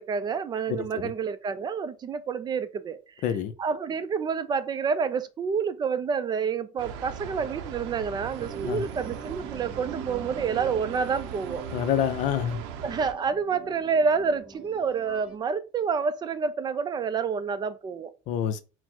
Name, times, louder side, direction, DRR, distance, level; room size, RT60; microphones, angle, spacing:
voice 1, 0.0-3.0 3.2-3.3 3.6-11.6 12.8-18.1, right 5 dB, 30° right, 0.4 m, -28 dB
voice 2, 0.7-1.1 3.2-3.5 8.6-8.9 11.7-12.6 18.3-18.6, left 9 dB, 55° left, 0.5 m, -27 dB
sound 1, 6.8-13.1, right 8 dB, 85° right, 0.6 m, -39 dB
sound 2, 8.4-15.4, right 4 dB, 5° right, 0.8 m, -43 dB
4.1 x 2.0 x 4.3 m
cardioid pair, 120°, 15 cm